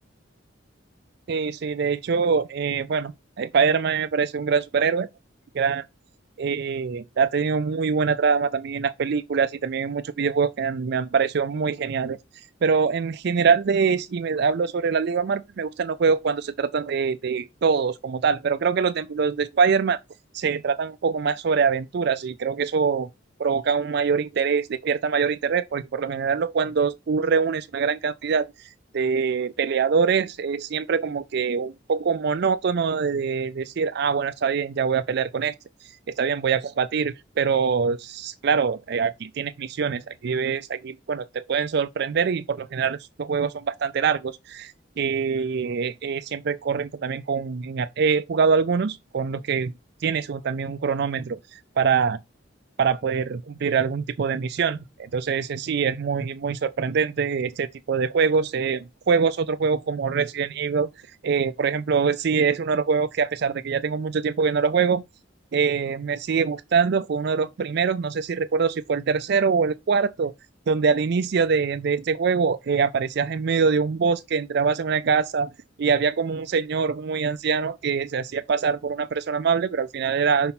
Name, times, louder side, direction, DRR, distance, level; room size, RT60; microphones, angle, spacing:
voice 1, 1.3-5.1 5.5-5.9 6.4-12.2 12.6-20.0 20.3-23.1 23.4-35.5 36.1-49.7 50.0-52.2 52.8-60.9 61.2-65.0 65.5-70.3 70.7-75.5 75.8-80.5, right 5 dB, 55° right, 0.4 m, -24 dB
5.6 x 4.3 x 5.8 m
head